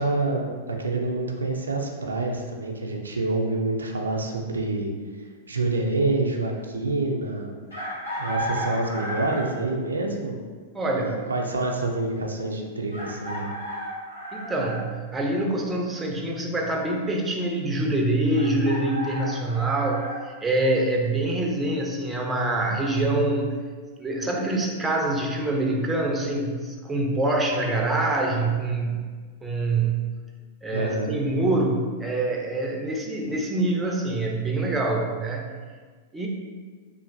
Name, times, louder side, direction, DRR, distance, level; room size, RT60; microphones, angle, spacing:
voice 1, 0.0-4.9 5.2-7.6 8.2-10.4 11.0-13.5 30.7-31.2, right 2 dB, 85° right, 2 dB, 0.3 m, -27 dB
Chicken rooster, 7.7-9.6 11.3-11.4 12.9-14.8 18.3-20.2, right 1 dB, 90° left, 1.3 m, -33 dB
voice 2, 10.7-11.2 14.3-23.6 24.0-29.1 29.4-30.1 30.6-35.5 36.1-36.3, right 2 dB, 15° right, 0 dB, 0.5 m, -25 dB
3.0 x 2.5 x 2.6 m, 1.5 s
hypercardioid pair, 105°, 0 cm